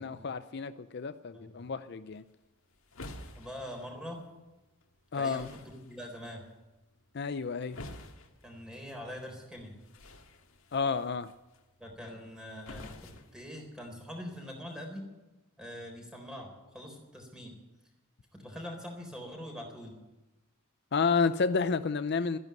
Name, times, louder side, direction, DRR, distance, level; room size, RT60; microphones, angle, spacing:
voice 1, 0.0-2.2 5.1-5.5 7.1-7.8 10.7-11.3 20.9-22.4, left 5 dB, 50° left, 12 dB, 0.5 m, -30 dB
sound 1, 2.1-14.1, left 1 dB, 85° left, 1.9 m, -52 dB
voice 2, 3.3-4.2 5.1-6.4 8.4-9.8 11.8-15.1 15.6-17.6 18.3-20.0, equal, 5° right, 2 dB, 3.9 m, -43 dB
13.5 x 10.5 x 9.1 m, 1.1 s
head